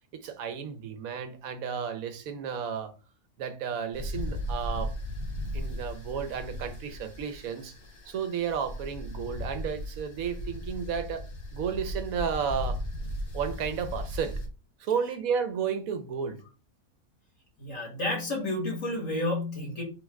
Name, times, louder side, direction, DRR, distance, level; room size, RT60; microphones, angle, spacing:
voice 1, 0.1-2.9 3.4-4.9 5.5-7.7 8.1-11.3 11.5-12.8 13.3-14.4 14.8-16.4, right 7 dB, 90° right, 1.2 m, -32 dB
sound 1, 3.9-14.5, left 1 dB, 45° left, 1.1 m, -36 dB
voice 2, 17.6-19.8, left 1 dB, 65° left, 2.0 m, -31 dB
3.7 x 3.3 x 3.6 m
omnidirectional pair, 1.4 m